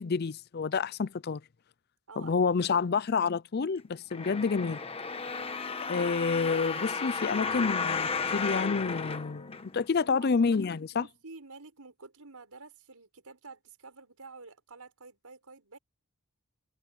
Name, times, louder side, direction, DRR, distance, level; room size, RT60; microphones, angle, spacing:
voice 1, 0.0-1.4 2.2-4.8 5.9-11.1, left 5 dB, 45° left, 0.5 m, -29 dB
voice 2, 2.1-2.8 5.2-5.5 10.0-10.3 10.9-15.8, right 3 dB, 85° right, 5.3 m, -50 dB
sound 1, 4.1-10.0 10.6-10.7, left 5 dB, 25° left, 1.2 m, -33 dB
head